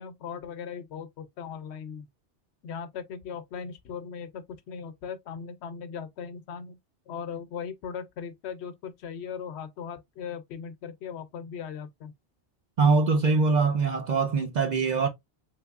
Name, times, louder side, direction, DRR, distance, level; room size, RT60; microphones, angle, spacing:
voice 1, 0.0-2.1 2.6-6.8 7.1-12.1, left 7 dB, 80° left, 0.9 m, -38 dB
voice 2, 12.8-15.1, right 4 dB, 55° right, 0.5 m, -23 dB
3.5 x 3.0 x 2.3 m
omnidirectional pair, 1.1 m